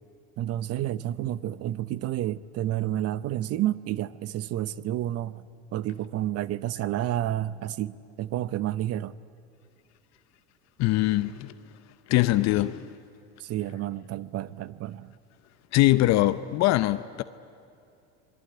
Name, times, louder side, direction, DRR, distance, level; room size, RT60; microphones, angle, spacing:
voice 1, 0.4-5.4 5.7-9.1 13.4-15.1, right 13 dB, 50° right, 0.8 m, -30 dB
voice 2, 10.8-11.5 12.1-12.9 15.7-17.2, left 16 dB, 55° left, 0.8 m, -22 dB
27.0 x 21.0 x 9.5 m
supercardioid pair, 95°, 32 cm